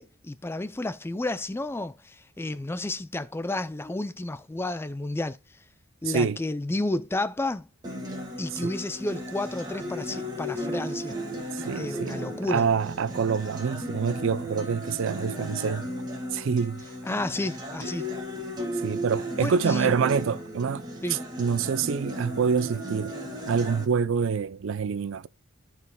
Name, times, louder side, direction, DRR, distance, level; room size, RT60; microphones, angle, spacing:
voice 1, 0.0-5.4 6.0-7.7 8.4-11.2 11.7-12.7 17.0-18.1 19.4-20.0 21.0-21.3, left 2 dB, 10° left, 0.3 m, -31 dB
voice 2, 6.0-6.4 8.6-8.7 11.5-15.9 16.3-16.8 18.8-20.8 21.1-23.1 23.5-25.3, right 6 dB, 60° right, 0.4 m, -26 dB
Acoustic guitar, 7.8-23.8, equal, 20° right, 1.9 m, -35 dB
14.0 x 4.8 x 2.2 m
head